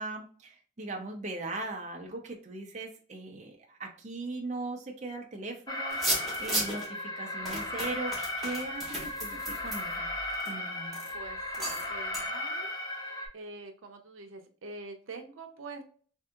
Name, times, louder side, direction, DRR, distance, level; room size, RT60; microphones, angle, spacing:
voice 1, 0.0-6.0 6.4-10.1 10.5-11.0, right 2 dB, 35° right, 2 dB, 0.5 m, -39 dB
Alarm, 5.7-13.3, left 1 dB, 20° left, 0.5 m, -36 dB
sound 1, 5.9-6.9 7.4-10.5 10.9-11.1 11.5-11.9 12.1-12.2, right 1 dB, ahead, 1.2 m, -34 dB
voice 2, 11.1-12.7 13.3-15.9, right 3 dB, 85° right, 5 dB, 0.6 m, -45 dB
3.5 x 2.7 x 2.3 m, 0.42 s
head